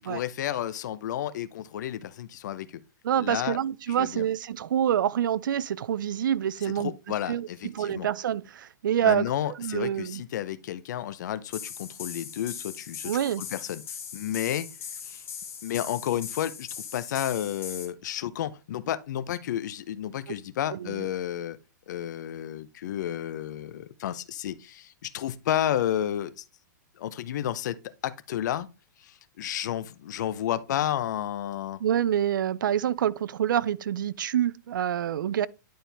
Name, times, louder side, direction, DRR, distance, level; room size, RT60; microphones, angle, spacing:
voice 1, 0.0-2.7 3.2-3.6 4.0-4.3 6.8-8.1 9.0-13.1 13.4-13.8 14.1-14.7 15.0-15.2 15.6-21.6 21.9-26.4 27.0-27.7 28.0-28.7 29.0-31.8, left 11 dB, 65° left, 0.6 m, -31 dB
voice 2, 3.0-6.9 7.3-9.3 9.6-10.2 13.1-13.4 20.7-21.1 31.8-35.5, right 10 dB, 80° right, 0.4 m, -27 dB
sound 1, 11.5-17.9, left 7 dB, 20° left, 2.6 m, -40 dB
9.3 x 4.4 x 3.3 m
hypercardioid pair, 145°, 10 cm